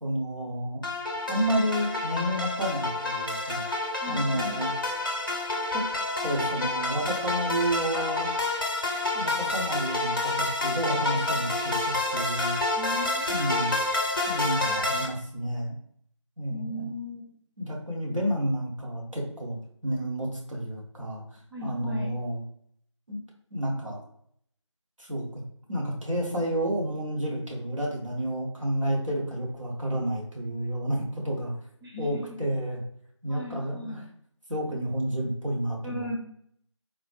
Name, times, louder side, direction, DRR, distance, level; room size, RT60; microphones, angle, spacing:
voice 1, 0.0-0.8 1.3-3.6 4.1-4.7 5.7-5.8 6.2-8.3 9.1-12.6 13.3-13.8 14.3-15.7 16.4-16.9 17.6-21.2 21.6-22.4 23.1-23.2 23.5-24.0 25.0-25.4 25.7-31.6 32.0-32.8 33.2-34.0 34.5-36.2, right 1 dB, 80° right, -3 dB, 1.3 m, -30 dB
sound 1, 0.8-15.1, left 2 dB, 45° left, 0.5 m, -29 dB
voice 2, 4.0-4.6 12.8-13.7 14.6-14.8 16.5-17.2 21.5-22.1 31.8-32.2 33.3-34.0 35.8-36.2, left 1 dB, 50° right, -4 dB, 0.9 m, -37 dB
3.9 x 2.1 x 3.1 m, 0.65 s
figure-of-eight pair, 180°, 16 cm